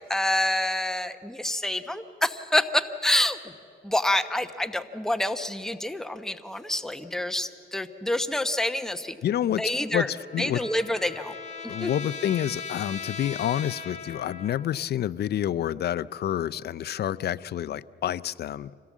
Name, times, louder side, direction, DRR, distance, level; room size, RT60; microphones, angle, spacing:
voice 1, 0.1-3.4 3.8-9.2 9.6-10.1 10.4-11.3 11.8-11.9, left 1 dB, ahead, 9 dB, 0.9 m, -27 dB
voice 2, 9.2-9.6 9.9-10.6 11.7-18.7, left 11 dB, 55° left, 16 dB, 0.5 m, -28 dB
Trumpet, 9.7-14.9, left 5 dB, 35° left, 1.9 m, -39 dB
25.5 x 17.0 x 7.4 m, 2.5 s
cardioid pair, 90°, 20 cm